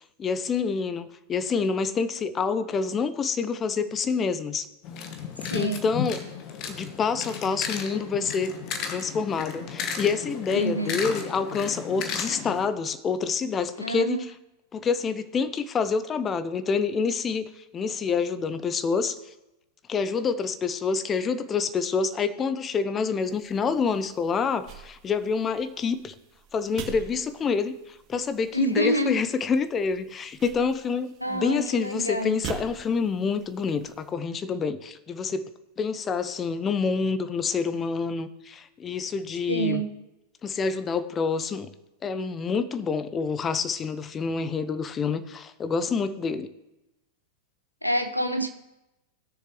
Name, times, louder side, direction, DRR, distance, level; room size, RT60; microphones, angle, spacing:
voice 1, 0.2-4.7 5.5-6.2 6.7-8.5 8.9-14.3 14.7-19.2 19.9-26.1 26.5-27.7 28.1-35.4 35.8-39.8 40.4-41.7 42.0-46.5, left 5 dB, 25° left, 13 dB, 0.6 m, -27 dB
sound 1, 4.8-12.7, left 7 dB, 40° left, 1.2 m, -34 dB
voice 2, 5.5-5.8 10.5-11.1 13.8-14.2 28.5-29.2 31.2-32.4 39.5-39.9 47.8-48.5, right 1 dB, 90° left, 9 dB, 0.8 m, -27 dB
sound 2, 23.2-34.1, right 7 dB, 35° right, 1.9 m, -45 dB
18.0 x 6.7 x 3.2 m, 0.97 s
figure-of-eight pair, 90°, 0 cm